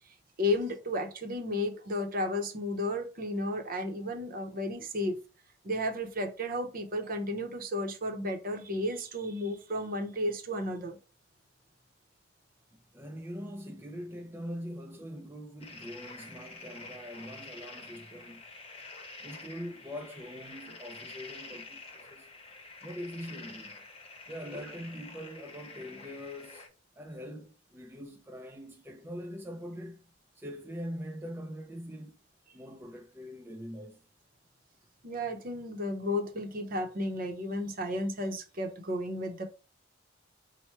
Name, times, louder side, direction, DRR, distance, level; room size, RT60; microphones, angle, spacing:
voice 1, 0.4-5.2 5.6-11.0 35.0-39.4, left 1 dB, 50° right, 0.7 m, -33 dB
voice 2, 12.9-18.4 19.2-22.3 22.8-23.8 24.3-30.0 30.4-32.1 32.5-34.0, equal, 10° right, 0.4 m, -43 dB
sound 1, 15.6-26.7, left 3 dB, 30° left, 1.0 m, -48 dB
4.5 x 2.1 x 4.3 m
head